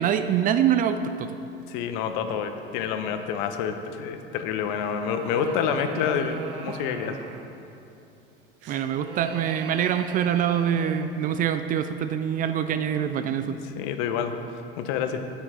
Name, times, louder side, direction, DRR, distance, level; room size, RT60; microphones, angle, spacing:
voice 1, 0.0-1.4 8.7-13.6, right 9 dB, 30° right, 10 dB, 0.4 m, -25 dB
voice 2, 1.7-7.2 13.2-14.3 14.8-15.2, left 7 dB, 55° left, 8 dB, 0.8 m, -28 dB
sound 1, 4.8-7.6 8.6-11.2, right 5 dB, 65° right, 0.8 m, -40 dB
8.8 x 8.7 x 4.3 m, 2.8 s
figure-of-eight pair, 80°, 30 cm